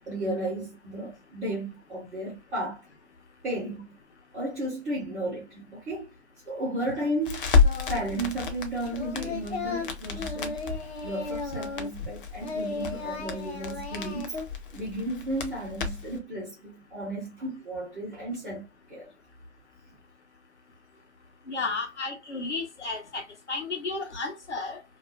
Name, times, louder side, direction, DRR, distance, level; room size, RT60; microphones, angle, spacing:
voice 1, 0.1-2.8 3.4-3.9 4.3-6.1 6.5-7.5 7.9-10.6 11.0-14.3 14.7-19.1, right 1 dB, ahead, 0.3 m, -34 dB
Crackle, 7.2-16.2, left 5 dB, 50° left, 0.8 m, -30 dB
Singing, 7.6-8.2 8.5-12.1 12.4-14.5, left 3 dB, 65° left, 1.3 m, -35 dB
voice 2, 21.5-24.8, left 3 dB, 85° left, 1.3 m, -33 dB
3.0 x 2.3 x 2.3 m
figure-of-eight pair, 140°, 34 cm